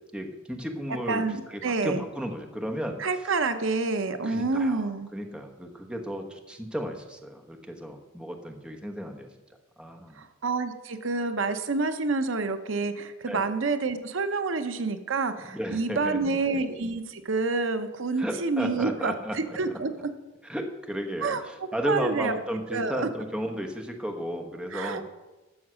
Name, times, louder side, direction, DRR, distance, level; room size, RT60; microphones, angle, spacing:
voice 1, 0.1-1.2 1.5-3.0 4.2-4.8 5.1-9.3 9.8-10.2 13.3-13.4 15.5-16.2 18.2-19.6 20.5-25.0, equal, 5° right, 2 dB, 1.1 m, -34 dB
voice 2, 1.1-2.0 3.0-5.1 10.1-20.1 21.2-22.4 22.7-23.1 24.7-25.0, right 3 dB, 65° right, 9 dB, 0.8 m, -28 dB
12.5 x 7.2 x 6.2 m, 1.1 s
head